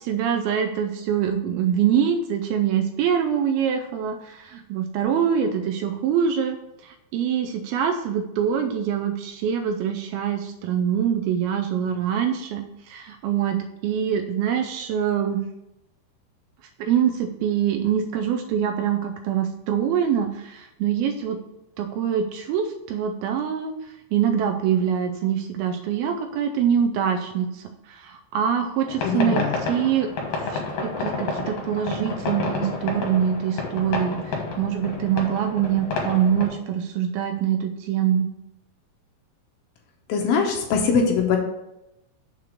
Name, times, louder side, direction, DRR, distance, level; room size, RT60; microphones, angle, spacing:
voice 1, 0.0-6.6 6.8-15.4 16.8-21.4 21.8-23.7 24.1-30.1 30.4-38.3, right 8 dB, 80° right, 6 dB, 2.2 m, -24 dB
sound 1, 28.9-36.5, left 3 dB, 60° left, 2.7 m, -30 dB
voice 2, 29.0-29.6 40.1-41.4, left 5 dB, 75° left, 2 dB, 2.3 m, -22 dB
6.7 x 4.5 x 6.4 m, 0.89 s
omnidirectional pair, 4.6 m